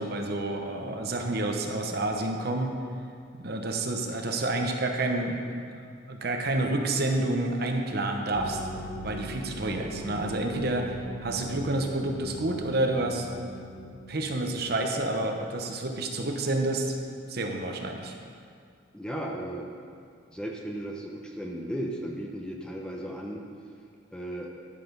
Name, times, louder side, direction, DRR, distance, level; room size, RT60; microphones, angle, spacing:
voice 1, 0.0-2.7 3.4-5.4 5.7-8.6 9.0-13.3 14.1-17.0 17.3-18.2, right 2 dB, 50° right, 3 dB, 0.9 m, -29 dB
sound 1, 8.3-16.5, equal, 45° left, 1.8 m, -41 dB
voice 2, 18.9-19.7 20.3-23.4 24.1-24.5, right 1 dB, 5° left, 0 dB, 0.8 m, -35 dB
11.5 x 6.8 x 5.4 m, 2.3 s
head